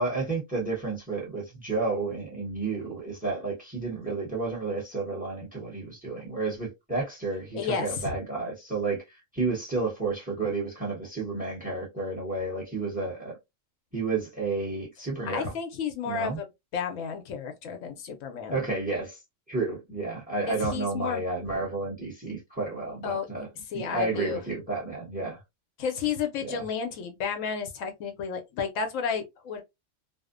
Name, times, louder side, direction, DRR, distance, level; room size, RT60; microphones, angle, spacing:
voice 1, 0.0-13.3 13.9-15.5 16.0-16.4 18.5-19.2 19.5-25.4 26.4-26.7, right 3 dB, 5° right, 0.9 m, -31 dB
voice 2, 7.5-7.9 15.3-16.4 16.7-18.6 20.5-21.2 23.0-23.3 23.7-24.4 25.8-29.6, left 6 dB, 80° left, 1.0 m, -32 dB
2.6 x 2.1 x 2.4 m
omnidirectional pair, 1.3 m